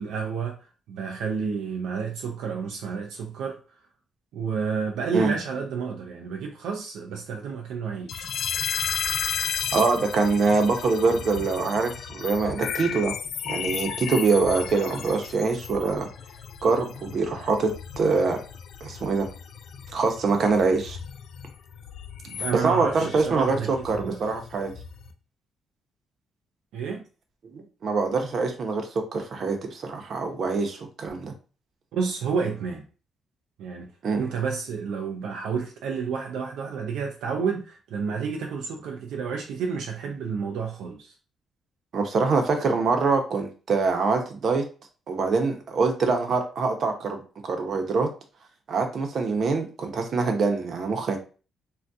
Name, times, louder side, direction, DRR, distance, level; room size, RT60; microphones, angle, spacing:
voice 1, 0.0-3.8 4.3-8.3 22.2-24.2 26.7-27.0 31.9-32.8 33.6-41.1, right 5 dB, 85° right, 0.4 m, -30 dB
sound 1, 8.1-25.1, left 8 dB, 80° left, 0.4 m, -34 dB
voice 2, 9.7-13.1 13.5-16.1 16.6-18.4 18.8-19.3 19.9-21.0 22.6-24.8 27.5-31.3 34.0-34.2 41.9-44.6 45.1-48.1 48.7-51.2, right 4 dB, 55° right, 0.8 m, -24 dB
2.7 x 2.3 x 3.4 m
cardioid pair, 90°, 0 cm